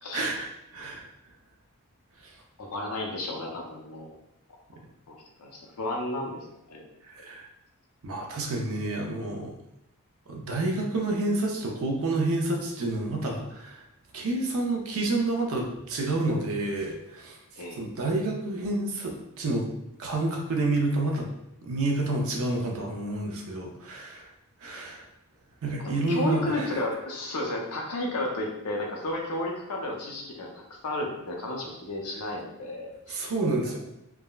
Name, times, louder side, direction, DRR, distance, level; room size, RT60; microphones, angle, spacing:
voice 1, 0.1-1.1 7.1-7.4 8.0-9.5 10.3-13.8 14.1-17.4 17.8-19.7 20.0-21.3 21.6-24.3 24.6-25.0 25.6-26.7 33.1-33.8, right 2 dB, 65° right, 1 dB, 0.5 m, -29 dB
voice 2, 2.6-4.1 5.1-6.8 17.6-17.8 25.8-33.2, left 1 dB, 75° left, 0 dB, 0.6 m, -33 dB
3.4 x 2.1 x 2.3 m, 0.84 s
head